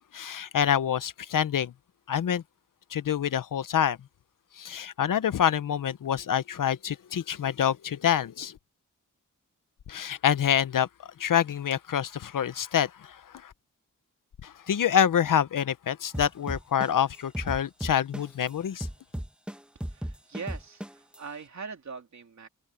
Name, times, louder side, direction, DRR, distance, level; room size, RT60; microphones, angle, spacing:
voice 1, 0.1-1.7 2.1-2.4 2.9-4.0 4.6-8.6 9.9-10.9 11.2-13.2 13.4-13.5 14.4-18.9, left 9 dB, 80° left, 0.8 m, -26 dB
sound 1, 16.1-18.5 18.8-21.2, equal, 5° right, 1.3 m, -35 dB
voice 2, 19.8-22.5, right 5 dB, 60° right, 3.2 m, -42 dB
wide cardioid pair, 105°, 32 cm